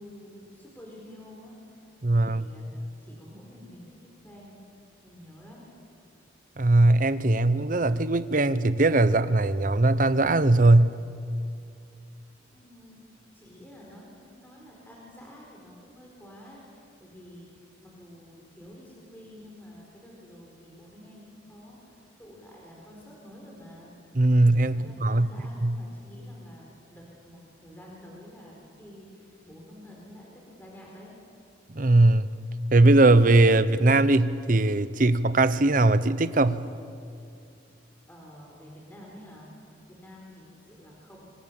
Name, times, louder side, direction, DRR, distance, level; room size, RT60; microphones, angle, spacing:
voice 1, 0.0-2.7 3.0-4.6 5.0-5.7 12.5-23.9 24.7-31.1 38.1-39.5 39.9-41.2, equal, 10° left, -3 dB, 4.6 m, -49 dB
voice 2, 2.0-2.5 6.6-10.9 24.1-25.3 25.6-25.8 31.7-32.3 32.7-36.7, right 2 dB, 45° right, 14 dB, 0.8 m, -20 dB
26.0 x 25.5 x 7.1 m, 2.4 s
head